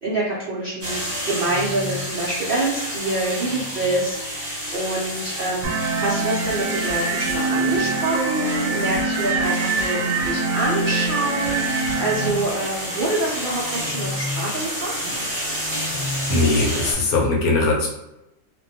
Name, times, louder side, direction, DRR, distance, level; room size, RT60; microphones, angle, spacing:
voice 1, 0.0-5.7 6.0-15.0, right 2 dB, 85° right, -6 dB, 0.4 m, -26 dB
sound 1, 0.8-16.9, equal, 20° right, 0.6 m, -30 dB
sound 2, 5.6-12.3, right 3 dB, 70° right, 0.9 m, -24 dB
sound 3, 7.6-16.9, equal, 30° left, 1.0 m, -39 dB
voice 2, 16.3-17.9, left 2 dB, 75° left, 0 dB, 1.0 m, -20 dB
2.5 x 2.2 x 2.7 m, 0.91 s
omnidirectional pair, 1.6 m